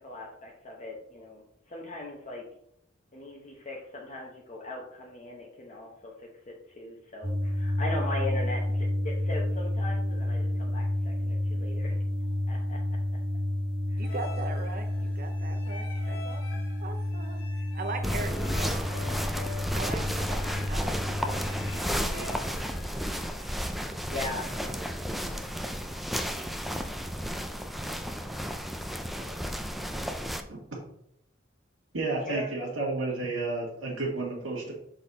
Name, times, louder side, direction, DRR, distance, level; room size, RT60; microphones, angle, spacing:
voice 1, 0.0-2.5 3.1-13.0 13.9-14.1 23.7-24.8 25.0-25.4 32.2-32.5, left 2 dB, 35° left, -2 dB, 0.9 m, -39 dB
sound 1, 7.2-21.7, left 1 dB, 30° right, 1.1 m, -30 dB
sound 2, 14.0-23.6, left 3 dB, 85° left, 1.5 m, -46 dB
voice 2, 14.0-19.2 19.7-20.4 20.7-21.4 21.7-22.3, right 3 dB, 45° right, 6 dB, 0.6 m, -40 dB
sound 3, 18.0-30.4, equal, ahead, 0.4 m, -33 dB
voice 3, 31.9-34.7, right 3 dB, 90° right, -5 dB, 1.5 m, -31 dB
6.1 x 4.1 x 4.0 m, 0.72 s
head